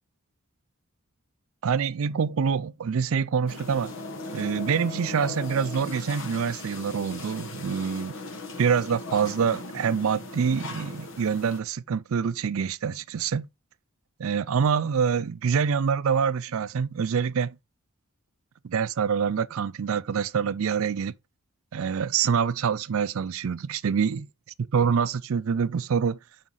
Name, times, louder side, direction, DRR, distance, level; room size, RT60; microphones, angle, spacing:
voice 1, 1.6-3.9 4.3-8.1 8.6-13.5 14.2-17.5 18.6-21.1 21.7-24.3 24.7-26.2, right 6 dB, 70° right, 0.4 m, -26 dB
sound 1, 3.5-11.6, left 3 dB, 60° left, 1.2 m, -38 dB
5.5 x 5.0 x 6.3 m
head